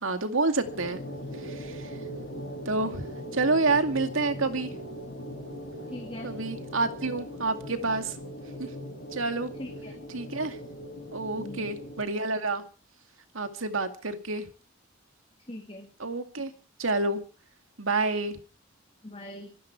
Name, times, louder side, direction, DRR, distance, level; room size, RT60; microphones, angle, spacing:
voice 1, 0.0-1.0 1.4-2.0 2.7-4.7 6.2-8.2 8.6-8.7 9.1-9.5 10.1-10.6 11.1-12.6 13.3-14.5 16.0-16.5 16.8-17.2 17.8-18.4, right 3 dB, 80° right, 2.3 m, -28 dB
sound 1, 0.6-12.0, equal, 50° left, 6.9 m, -40 dB
voice 2, 5.9-6.3 9.5-9.9 11.3-11.7 15.4-15.9 19.0-19.5, left 1 dB, 25° left, 2.2 m, -41 dB
25.0 x 11.5 x 4.6 m
head